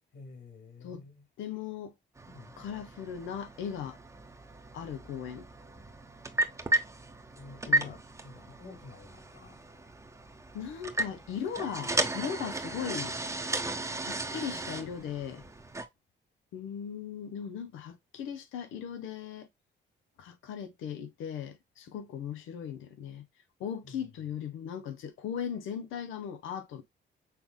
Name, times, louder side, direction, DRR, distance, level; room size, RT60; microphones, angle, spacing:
voice 1, 0.1-1.3 2.3-2.6 7.3-9.6 15.3-15.4 23.8-24.0, left 3 dB, 60° left, 2.7 m, -50 dB
voice 2, 1.4-1.9 2.6-4.0 4.7-5.5 7.7-7.9 10.5-13.1 14.0-15.4 16.5-19.5 20.2-23.3 23.6-26.8, left 8 dB, 90° left, 1.0 m, -38 dB
sound 1, 2.2-15.8, right 2 dB, 15° right, 0.9 m, -35 dB
6.1 x 3.6 x 2.2 m
cardioid pair, 90°, 20 cm